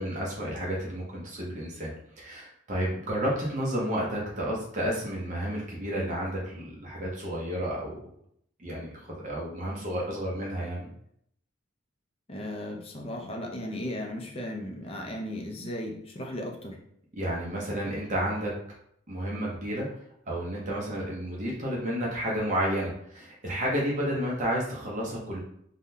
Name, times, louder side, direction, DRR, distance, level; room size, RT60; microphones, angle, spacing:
voice 1, 0.0-7.9 8.6-10.9 17.2-18.5 19.1-19.9 20.3-25.4, equal, 35° right, -3 dB, 0.6 m, -31 dB
voice 2, 12.3-16.8, left 1 dB, 30° left, 1 dB, 0.5 m, -36 dB
3.5 x 2.2 x 2.6 m, 0.70 s
head